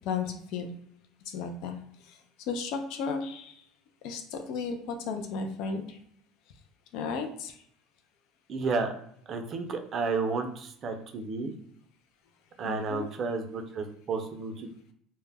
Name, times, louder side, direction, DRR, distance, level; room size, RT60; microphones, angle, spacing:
voice 1, 0.0-0.7 1.3-1.8 2.0-3.6 4.0-6.0 6.9-7.6 12.6-13.1, left 5 dB, 65° left, 6 dB, 0.3 m, -34 dB
voice 2, 8.5-8.9 9.3-11.5 12.6-14.7, right 4 dB, 35° right, 5 dB, 0.4 m, -32 dB
2.2 x 2.0 x 3.3 m, 0.67 s
cardioid pair, 135°, 0 cm